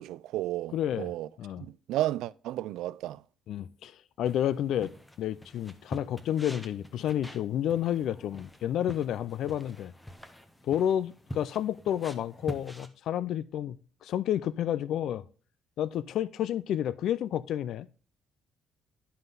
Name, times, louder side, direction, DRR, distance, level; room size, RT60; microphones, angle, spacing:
voice 1, 0.0-1.3 1.6-3.2, right 14 dB, 85° right, 0.3 m, -33 dB
voice 2, 0.7-1.1 1.4-1.6 3.5-3.9 4.2-4.9 5.2-9.9 10.6-13.8 14.0-15.2 15.8-17.9, left 10 dB, 60° left, 0.4 m, -30 dB
sound 1, 4.3-12.9, equal, 5° left, 0.8 m, -46 dB
11.0 x 5.6 x 3.9 m
cardioid pair, 165°, 0 cm